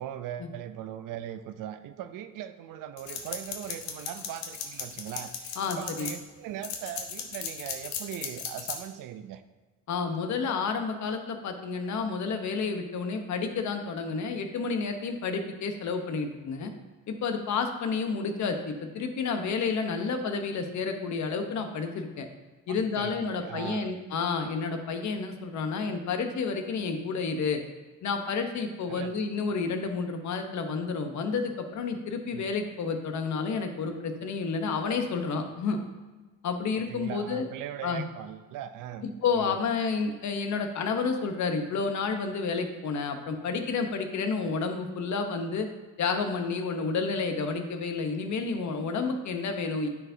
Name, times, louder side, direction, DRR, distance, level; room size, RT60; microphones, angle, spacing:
voice 1, 0.0-9.4 22.7-23.9 28.9-29.2 32.3-32.5 36.9-39.1 39.3-39.6, right 10 dB, 65° right, 11 dB, 0.5 m, -39 dB
sound 1, 3.0-6.1 6.6-8.8, left 7 dB, 80° left, 1.1 m, -36 dB
voice 2, 5.6-6.1 9.9-16.7 17.1-22.3 22.7-27.6 28.0-35.8 36.4-37.5 37.8-38.0 39.0-45.7 46.0-49.9, left 5 dB, 55° left, 6 dB, 0.9 m, -30 dB
9.6 x 4.7 x 2.7 m, 1.3 s
cardioid pair, 100°, 35 cm